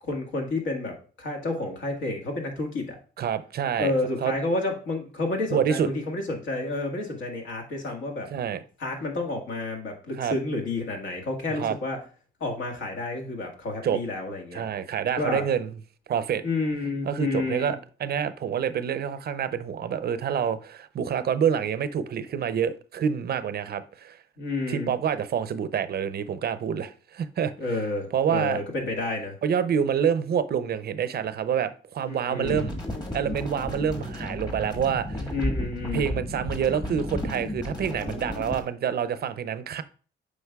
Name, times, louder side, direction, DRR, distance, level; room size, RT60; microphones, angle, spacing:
voice 1, 0.1-3.0 3.8-8.3 8.8-12.0 12.4-14.7 15.1-15.4 16.4-17.7 24.4-24.9 27.6-29.4 32.1-32.6 35.1-36.1, left 2 dB, 70° left, 1.8 m, -30 dB
voice 2, 3.2-3.9 4.2-4.3 5.5-5.9 8.3-8.6 10.2-10.4 11.5-11.8 13.8-14.0 14.5-15.7 16.1-16.4 17.1-24.2 24.7-27.5 28.1-28.6 29.4-32.8 33.1-35.3 35.9-39.8, right 8 dB, 55° right, 0.5 m, -27 dB
sound 1, 32.4-38.6, left 1 dB, 20° left, 1.5 m, -33 dB
8.0 x 5.2 x 2.3 m
cardioid pair, 90°, 20 cm